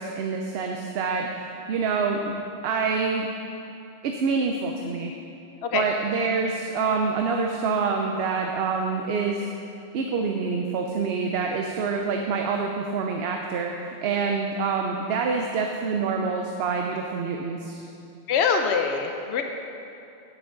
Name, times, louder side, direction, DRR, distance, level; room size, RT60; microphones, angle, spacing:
voice 1, 0.0-2.3 2.6-3.3 4.0-5.1 5.7-9.5 9.9-17.8, right 5 dB, 75° right, 2 dB, 0.8 m, -26 dB
voice 2, 18.3-19.4, left 6 dB, 90° left, 4 dB, 0.9 m, -24 dB
9.3 x 7.8 x 3.8 m, 2.6 s
omnidirectional pair, 1.1 m